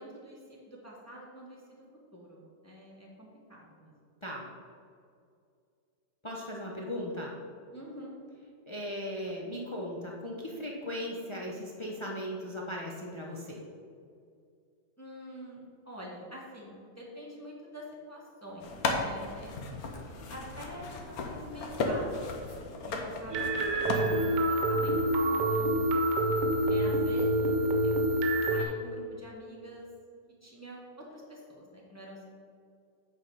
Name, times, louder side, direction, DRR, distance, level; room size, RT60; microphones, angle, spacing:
voice 1, 0.0-1.8 2.1-3.9 7.7-8.1 15.0-19.5 20.3-22.1 22.4-25.9 26.7-28.1 28.5-29.9 30.4-32.3, equal, 10° left, -3 dB, 1.0 m, -47 dB
voice 2, 6.2-7.3 8.7-13.6, equal, 35° left, -2 dB, 0.4 m, -37 dB
sound 1, 18.6-23.9, left 3 dB, 60° left, 1.2 m, -35 dB
sound 2, 23.3-28.6, right 1 dB, 70° right, 1.4 m, -27 dB
8.2 x 4.4 x 5.4 m, 2.3 s
omnidirectional pair, 1.9 m